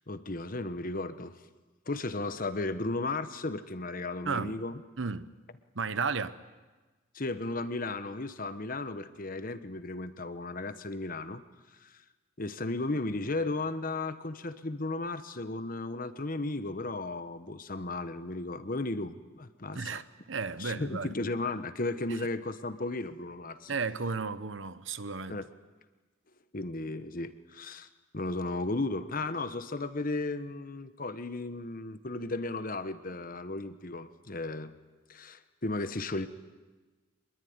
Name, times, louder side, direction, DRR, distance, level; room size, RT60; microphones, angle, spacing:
voice 1, 0.1-1.3 1.9-4.8 7.1-11.4 11.8-12.0 12.4-20.0 20.6-23.7 25.3-25.4 26.5-27.9 28.1-34.7 35.1-36.3, left 2 dB, 45° left, 1.2 m, -35 dB
voice 2, 4.2-4.6 5.0-5.3 5.7-6.4 19.7-21.1 23.7-25.4, right 4 dB, 65° right, 1.0 m, -33 dB
25.0 x 21.5 x 9.6 m
head